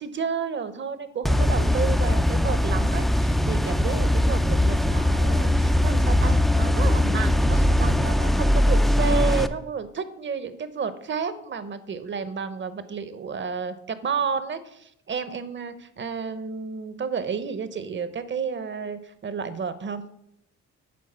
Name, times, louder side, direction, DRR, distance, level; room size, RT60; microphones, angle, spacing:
voice 1, 0.0-20.0, right 6 dB, 40° right, 13 dB, 0.8 m, -31 dB
sound 1, 1.2-9.5, left 1 dB, ahead, 0.4 m, -21 dB
8.7 x 3.8 x 6.7 m, 0.76 s
cardioid pair, 90°, 30 cm